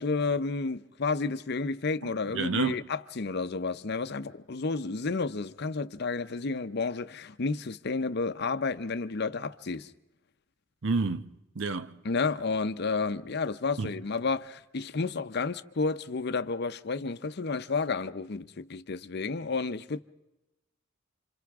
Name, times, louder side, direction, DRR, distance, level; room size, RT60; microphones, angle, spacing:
voice 1, 0.0-9.9 12.0-20.0, left 4 dB, 55° left, 0.6 m, -31 dB
voice 2, 2.3-2.8 10.8-11.3 11.5-12.0 13.8-13.9, right 4 dB, 70° right, 0.8 m, -28 dB
29.0 x 27.0 x 3.6 m
head